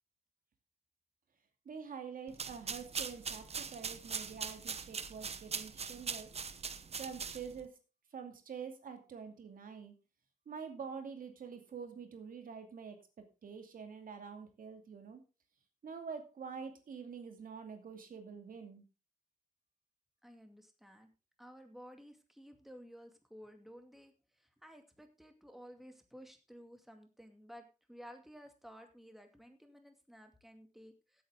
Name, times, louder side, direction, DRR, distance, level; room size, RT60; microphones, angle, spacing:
voice 1, 1.7-6.3 7.0-7.7 8.1-9.9 10.5-13.0 13.4-15.2 15.8-18.8, right 6 dB, 80° right, 6 dB, 2.5 m, -46 dB
sound 1, 2.3-7.7, right 5 dB, 45° right, 0.9 m, -41 dB
voice 2, 20.2-21.1 21.4-31.2, equal, ahead, 5 dB, 2.3 m, -55 dB
15.5 x 8.6 x 3.8 m, 0.31 s
wide cardioid pair, 115°, 14 cm